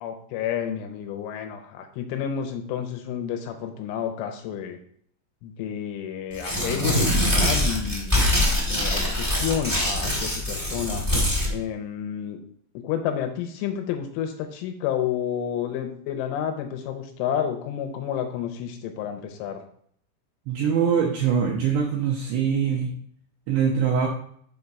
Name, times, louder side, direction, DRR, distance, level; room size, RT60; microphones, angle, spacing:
voice 1, 0.0-4.8 5.4-8.2 8.7-11.0 11.5-12.4 12.7-19.6, left 9 dB, 85° left, 5 dB, 3.1 m, -30 dB
Tearing, 6.3-11.5, left 1 dB, 15° right, 0.6 m, -23 dB
voice 2, 20.5-22.9 23.5-24.1, right 7 dB, 80° right, -1 dB, 2.4 m, -23 dB
7.5 x 3.5 x 5.4 m, 0.63 s
omnidirectional pair, 5.9 m